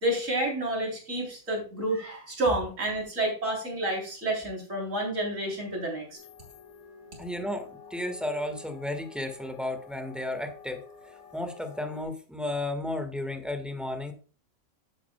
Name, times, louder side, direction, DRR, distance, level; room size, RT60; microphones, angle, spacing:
voice 1, 0.0-6.1, right 1 dB, 60° right, 0 dB, 3.8 m, -29 dB
sound 1, 6.1-12.0, left 6 dB, 80° left, 2.7 m, -49 dB
voice 2, 7.2-14.1, left 1 dB, ahead, 5 dB, 1.3 m, -33 dB
11.5 x 8.5 x 2.2 m, 0.38 s
omnidirectional pair, 1.5 m